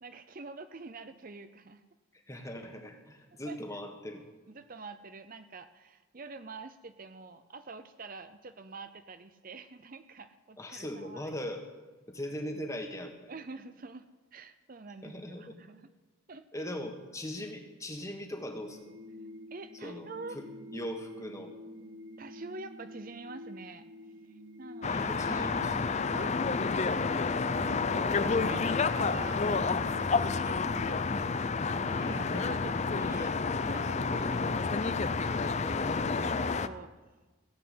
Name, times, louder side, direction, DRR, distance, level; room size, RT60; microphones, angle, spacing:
voice 1, 0.0-1.8 3.5-3.6 4.5-11.3 13.3-14.0 14.3-15.9 16.3-16.5 19.5-20.4 22.2-23.9 24.6-25.3 26.1-36.9, right 3 dB, 45° right, 11 dB, 0.6 m, -46 dB
voice 2, 2.3-4.3 10.6-11.6 12.1-13.1 15.0-15.5 16.5-18.8 19.8-20.1 20.3-20.5 20.7-21.5 24.9-25.8 32.0-32.7, equal, 15° left, 4 dB, 1.6 m, -39 dB
sound 1, 18.7-32.4, left 1 dB, 60° right, 1.1 m, -48 dB
sound 2, 24.8-36.7, left 4 dB, 35° left, 0.5 m, -30 dB
16.5 x 8.1 x 9.4 m, 1.2 s
head